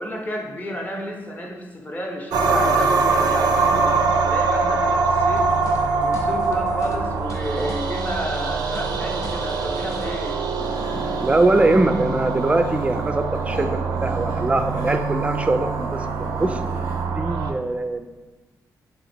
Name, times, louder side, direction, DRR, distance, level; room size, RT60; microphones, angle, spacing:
voice 1, 0.0-5.5 6.0-10.4, equal, 25° left, 1 dB, 0.8 m, -32 dB
sound 1, 2.3-17.5, right 4 dB, 85° right, 0.4 m, -23 dB
sound 2, 5.4-10.3, left 1 dB, 55° left, 0.6 m, -39 dB
sound 3, 10.6-17.0, left 2 dB, 80° left, 0.9 m, -38 dB
voice 2, 11.2-16.6 17.2-18.1, right 2 dB, 20° right, 8 dB, 0.3 m, -22 dB
3.6 x 2.7 x 4.2 m, 1.2 s
cardioid pair, 75°, 7 cm